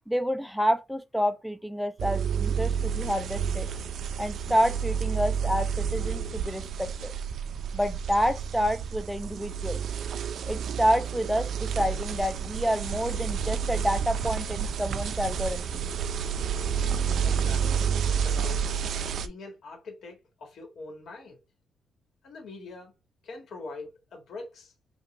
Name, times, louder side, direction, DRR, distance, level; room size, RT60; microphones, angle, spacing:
voice 1, 0.1-3.7 4.2-7.1 7.7-9.8 10.5-15.8, equal, ahead, 0.5 m, -28 dB
sound 1, 2.0-19.3, right 7 dB, 70° right, 0.4 m, -30 dB
voice 2, 17.2-18.6 18.9-21.4 22.2-22.9 23.2-24.7, left 3 dB, 70° left, 1.6 m, -43 dB
5.4 x 2.5 x 3.1 m
wide cardioid pair, 145°, 0 cm